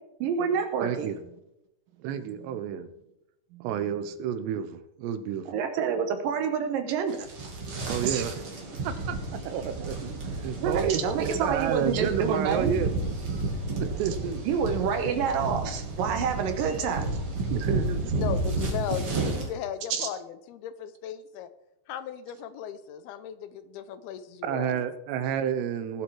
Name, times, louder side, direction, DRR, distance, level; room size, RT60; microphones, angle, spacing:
voice 1, 0.2-1.1 3.5-3.7 5.5-7.3 8.0-8.3 10.6-12.7 14.5-17.1 19.9-20.1, right 6 dB, 70° right, 6 dB, 2.3 m, -28 dB
voice 2, 0.8-1.2 2.0-2.9 3.6-5.5 7.9-8.4 8.8-9.2 9.4-12.9 13.8-14.5 17.5-18.1 24.4-26.0, right 9 dB, 90° right, 11 dB, 3.1 m, -30 dB
sound 1, 7.1-19.5, right 2 dB, 40° right, 2.7 m, -31 dB
voice 3, 18.2-21.5 21.9-24.8, left 9 dB, 80° left, 12 dB, 2.5 m, -36 dB
19.5 x 7.9 x 4.7 m, 0.87 s
omnidirectional pair, 4.8 m